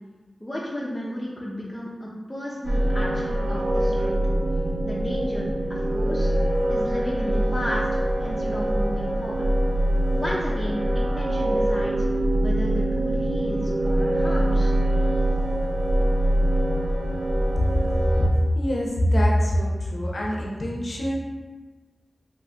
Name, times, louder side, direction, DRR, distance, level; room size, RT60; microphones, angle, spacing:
voice 1, 0.4-4.2 4.8-6.3 6.7-7.9 8.2-9.5 10.1-14.7, equal, 20° left, -6 dB, 0.5 m, -33 dB
sound 1, 2.6-18.3, right 1 dB, 85° right, 0.4 m, -23 dB
voice 2, 18.5-21.2, equal, 70° left, -3 dB, 0.6 m, -23 dB
2.7 x 2.5 x 3.3 m, 1.3 s
cardioid pair, 40°, 0 cm